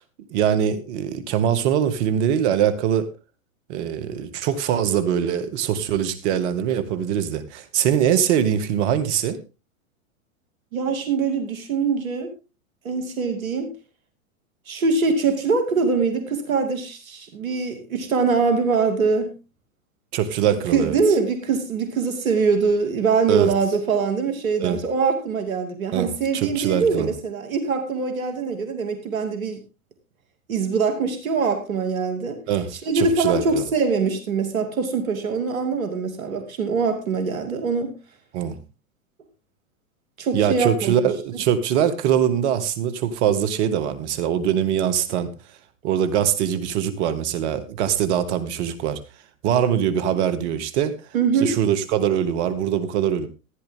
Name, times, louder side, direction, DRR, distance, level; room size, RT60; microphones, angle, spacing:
voice 1, 0.3-3.1 3.7-9.4 20.1-21.0 23.3-23.5 24.6-24.8 25.9-27.1 32.5-33.7 38.3-38.6 40.3-45.3 45.8-49.0 49.4-51.0 51.4-53.3, right 9 dB, 55° right, 11 dB, 2.1 m, -22 dB
voice 2, 10.7-12.3 12.8-13.7 14.7-19.3 20.7-29.6 30.5-32.4 32.8-38.0 40.2-41.1 51.1-51.6, right 4 dB, 80° right, 6 dB, 2.7 m, -23 dB
15.0 x 10.5 x 3.7 m, 0.29 s
hypercardioid pair, 105°, 41 cm